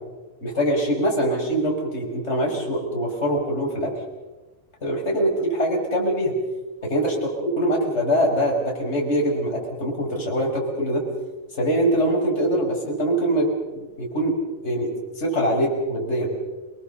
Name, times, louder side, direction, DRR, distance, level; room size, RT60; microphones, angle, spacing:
voice 1, 0.4-3.9 4.8-6.3 6.8-11.0 11.6-14.4 14.6-16.3, right 1 dB, 15° left, -1 dB, 5.4 m, -23 dB
28.5 x 20.0 x 7.0 m, 1.2 s
omnidirectional pair, 4.2 m